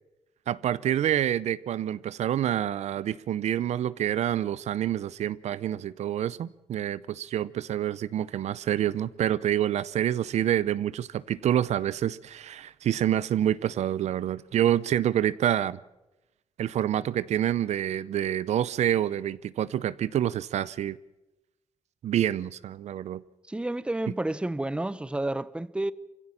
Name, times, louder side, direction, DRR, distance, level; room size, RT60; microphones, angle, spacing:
voice 1, 0.5-15.8 16.6-21.0 22.0-23.2, right 11 dB, 70° right, 0.7 m, -27 dB
voice 2, 23.5-25.9, right 1 dB, 10° right, 0.8 m, -30 dB
23.5 x 16.0 x 8.6 m
cardioid pair, 85°, 12 cm